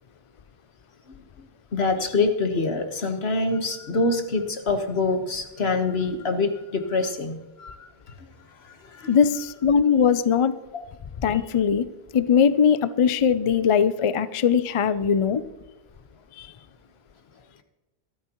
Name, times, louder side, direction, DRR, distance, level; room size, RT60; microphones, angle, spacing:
voice 1, 1.7-7.8 8.1-8.2 8.6-9.2 10.7-10.8 11.3-11.4, left 3 dB, 80° left, 6 dB, 1.6 m, -25 dB
voice 2, 9.1-10.5 11.2-11.9 12.1-15.4 16.4-16.5, left 7 dB, 45° left, 14 dB, 0.4 m, -20 dB
24.0 x 9.2 x 3.0 m, 1.1 s
omnidirectional pair, 1.0 m